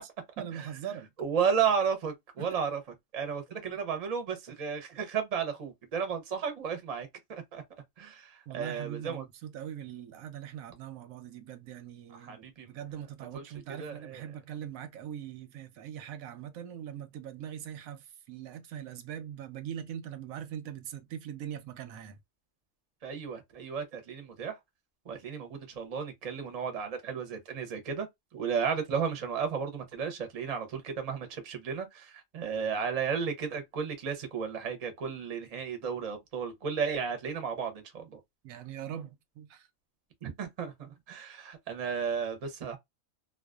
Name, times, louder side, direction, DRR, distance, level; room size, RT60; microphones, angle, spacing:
voice 1, 0.4-1.1 2.4-2.5 8.5-22.2 38.4-39.7, right 9 dB, 85° right, 1.0 m, -41 dB
voice 2, 1.2-2.8 3.1-7.6 8.0-9.2 12.2-12.7 13.3-13.4 13.7-14.2 23.0-24.6 25.1-28.1 28.3-38.2 40.2-42.8, right 6 dB, 40° right, 0.6 m, -33 dB
2.4 x 2.3 x 2.3 m
omnidirectional pair, 1.4 m